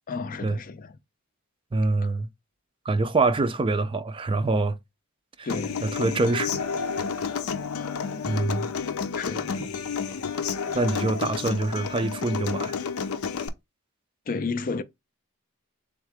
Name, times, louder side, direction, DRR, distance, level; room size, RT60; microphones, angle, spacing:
voice 1, 0.1-1.0 2.0-2.1 5.4-5.9 9.2-9.6 14.3-14.8, left 4 dB, 40° left, 0.4 m, -32 dB
voice 2, 1.7-2.3 2.9-4.8 5.4-5.5 5.8-6.6 8.3-8.7 9.6-9.7 10.7-12.7, right 3 dB, 25° right, 0.4 m, -25 dB
Human voice / Acoustic guitar, 5.5-13.5, left 6 dB, 85° left, 0.6 m, -30 dB
3.7 x 3.5 x 3.4 m
head